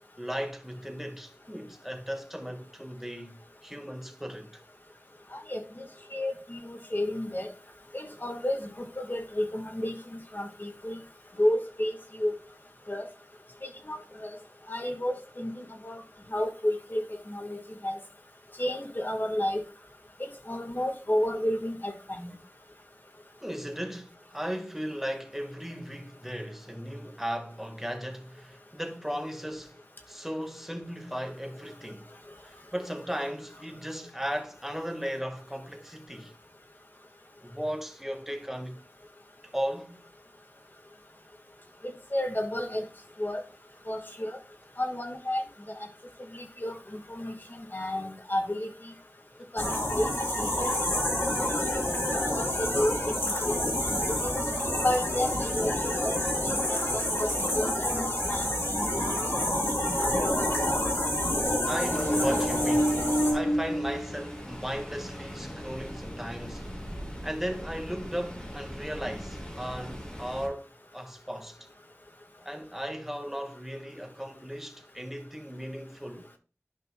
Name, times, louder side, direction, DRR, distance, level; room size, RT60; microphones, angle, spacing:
voice 1, 0.2-4.5 23.4-29.8 30.1-32.1 32.4-36.3 37.4-38.8 39.5-40.1 61.7-63.0 63.3-66.7 67.2-71.6 72.4-76.3, equal, 5° right, 1.5 m, -36 dB
voice 2, 5.3-7.5 7.9-11.0 11.4-12.3 12.9-13.1 13.6-14.4 14.7-16.0 16.3-17.9 18.6-19.6 20.2-22.3 41.8-42.9 43.2-43.4 43.9-44.4 44.8-45.4 46.3-48.9 49.5-50.1 50.4-50.7 52.3-54.4 54.8-59.9, left 1 dB, 40° left, 1.5 m, -32 dB
sound 1, 49.6-63.3, left 1 dB, 60° left, 3.4 m, -28 dB
Ocean, 61.9-70.5, equal, 20° left, 2.4 m, -32 dB
12.0 x 5.3 x 2.2 m
wide cardioid pair, 50°, 5 cm